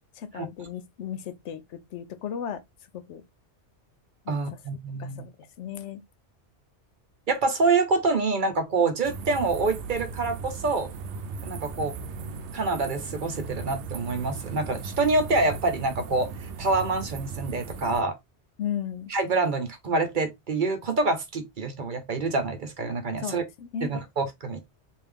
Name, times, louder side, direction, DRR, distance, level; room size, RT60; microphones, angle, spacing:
voice 1, 0.1-2.6 2.9-3.2 4.2-4.6 5.0-6.0 18.6-19.1 23.2-23.9, left 9 dB, 80° left, 0.9 m, -35 dB
voice 2, 4.3-5.2 7.3-10.9 11.4-12.0 12.5-16.3 16.6-18.2 19.1-23.4 23.8-24.7, right 3 dB, 50° right, 0.8 m, -26 dB
sound 1, 9.0-18.0, right 4 dB, 75° right, 0.9 m, -37 dB
3.5 x 2.6 x 3.4 m
omnidirectional pair, 1.2 m